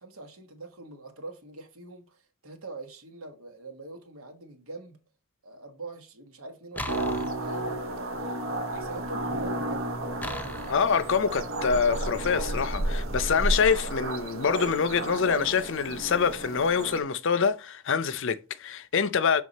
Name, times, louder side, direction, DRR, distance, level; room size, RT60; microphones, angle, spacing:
voice 1, 0.0-5.0 5.4-7.7 8.5-9.9, right 2 dB, 85° right, 1.4 m, -43 dB
sound 1, 6.8-8.0 10.2-11.0, left 1 dB, 10° left, 0.5 m, -38 dB
sound 2, 6.9-17.0, right 1 dB, 65° right, 0.9 m, -32 dB
voice 2, 10.7-19.4, left 6 dB, 60° left, 0.5 m, -25 dB
6.5 x 3.5 x 4.1 m
head